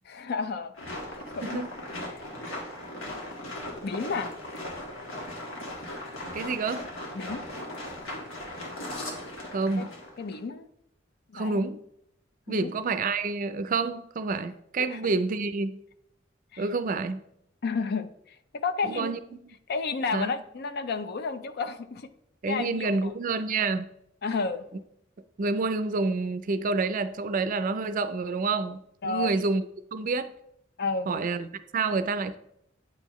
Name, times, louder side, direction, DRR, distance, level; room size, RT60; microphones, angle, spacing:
voice 1, 0.1-0.7 1.1-1.6 2.1-2.5 3.8-4.3 7.1-7.4 9.8-9.9 10.2-10.7 11.3-11.6 12.5-12.7 14.8-15.1 16.5-16.7 17.6-19.1 19.7-22.1 22.5-23.1 24.2-24.7 29.0-29.4 30.8-31.3, left 4 dB, 55° left, 0.5 m, -32 dB
sound 1, 0.7-10.4, left 1 dB, 85° left, 1.7 m, -38 dB
voice 2, 6.3-6.9 9.5-9.9 11.3-11.8 12.5-15.8 16.6-17.2 18.8-19.2 19.4-19.5 20.1-20.3 22.4-23.9 25.4-29.6 29.9-30.3 31.1-32.4, right 3 dB, 45° right, 0.4 m, -28 dB
8.7 x 5.6 x 3.0 m
head